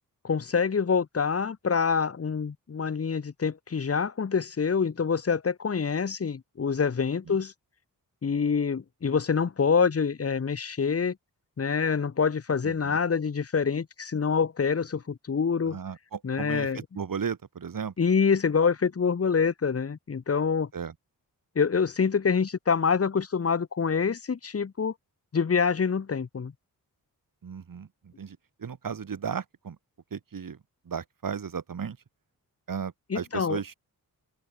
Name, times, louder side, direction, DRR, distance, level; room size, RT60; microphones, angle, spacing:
voice 1, 0.2-7.5 8.2-11.1 11.6-15.8 16.2-16.8 18.0-20.7 21.5-24.9 25.3-26.5 33.1-33.6, left 6 dB, 40° left, 1.3 m, -26 dB
voice 2, 12.6-13.0 15.7-17.9 20.7-20.9 27.4-29.8 30.1-30.6 30.9-32.0 32.7-33.7, right 6 dB, 65° right, 3.8 m, -35 dB
open air
cardioid pair, 80°, 36 cm